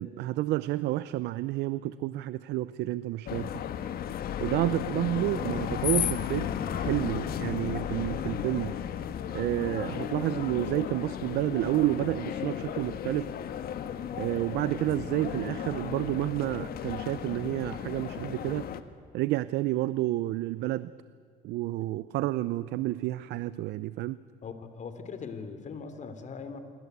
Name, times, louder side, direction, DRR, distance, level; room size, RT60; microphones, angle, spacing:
voice 1, 0.0-3.5 4.4-8.7 9.3-13.3 14.2-18.7 19.1-20.9 21.4-24.2, right 16 dB, 85° right, 16 dB, 0.6 m, -30 dB
sound 1, 3.3-18.8, left 9 dB, 65° left, 1.6 m, -34 dB
voice 2, 24.4-26.6, left 5 dB, 45° left, 9 dB, 3.1 m, -40 dB
27.5 x 23.0 x 8.2 m, 2.3 s
cardioid pair, 110°, 17 cm